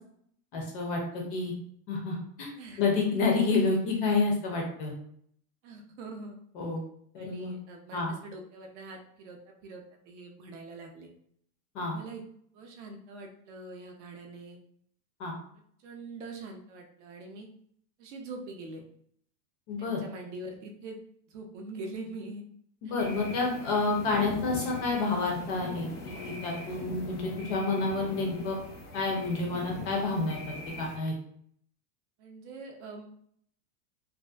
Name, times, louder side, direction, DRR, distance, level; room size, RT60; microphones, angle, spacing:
voice 1, 0.5-1.5 1.9-2.5 2.8-4.9 6.5-6.8 7.1-7.5 7.9-8.1 11.7-11.9 15.2-15.4 19.7-20.0 22.8-28.6 28.9-30.4 30.7-31.1, left 3 dB, 35° left, 0 dB, 0.5 m, -29 dB
voice 2, 1.1-1.5 2.6-2.8 5.6-6.4 7.2-11.1 11.8-12.2 12.5-14.6 15.8-17.5 18.0-18.8 19.8-21.0 21.3-22.4 23.4-23.5 32.2-33.1, right 2 dB, 50° right, 2 dB, 0.5 m, -44 dB
sound 1, 23.0-31.0, left 2 dB, 80° left, 0.9 m, -41 dB
2.6 x 2.4 x 2.2 m, 0.66 s
supercardioid pair, 165°, 46 cm